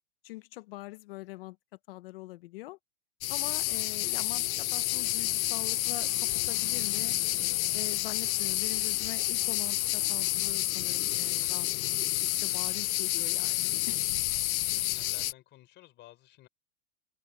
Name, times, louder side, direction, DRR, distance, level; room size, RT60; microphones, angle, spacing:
voice 1, 0.2-1.6 1.9-2.8 3.3-7.2 7.7-14.0, left 19 dB, 40° left, 0.8 m, -43 dB
sound 1, 3.2-15.3, left 16 dB, 70° left, 0.6 m, -29 dB
sound 2, 3.3-10.5, left 3 dB, 5° left, 3.8 m, -56 dB
voice 2, 13.7-14.1 14.4-16.5, left 15 dB, 25° left, 5.0 m, -55 dB
supercardioid pair, 165°, 44 cm